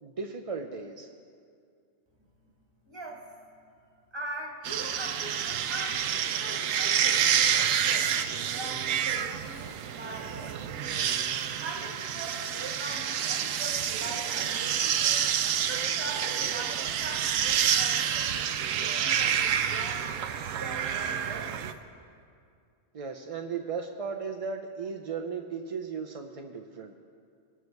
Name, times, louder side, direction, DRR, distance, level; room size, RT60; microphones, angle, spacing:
voice 1, 0.0-1.1 22.9-26.9, right 5 dB, 45° right, 3 dB, 0.4 m, -36 dB
voice 2, 2.8-3.3 3.6-3.7 4.1-11.0 11.6-15.3 15.6-20.1 20.5-21.6, right 2 dB, 20° right, 1 dB, 1.4 m, -42 dB
sound 1, 4.7-21.7, right 8 dB, 85° right, 1.0 m, -28 dB
21.0 x 7.8 x 4.6 m, 2.3 s
omnidirectional pair, 1.3 m